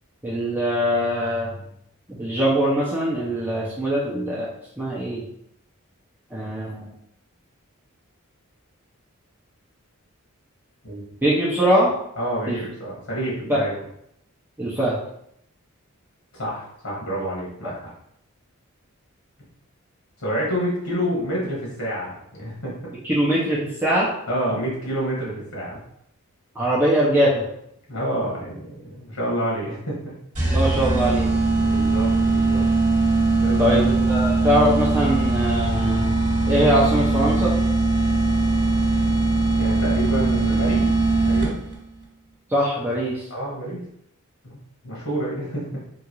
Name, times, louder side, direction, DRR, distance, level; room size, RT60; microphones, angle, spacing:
voice 1, 0.2-1.6 2.1-4.5 4.8-5.3 6.3-6.9 11.2-11.9 12.5-12.6 13.5-13.6 14.6-15.0 23.0-24.1 26.5-27.5 30.5-31.3 33.6-36.1 36.5-37.5 42.5-43.2, equal, 10° right, -8 dB, 0.7 m, -22 dB
voice 2, 12.2-13.8 16.3-17.9 20.2-22.7 24.3-25.8 27.9-30.0 31.5-32.7 33.4-33.8 39.6-40.9 41.2-41.6 43.3-43.8 44.4-45.7, equal, 85° left, -5 dB, 1.7 m, -28 dB
sound 1, 30.4-41.8, right 3 dB, 35° right, 1.7 m, -20 dB
3.8 x 2.6 x 4.5 m, 0.74 s
head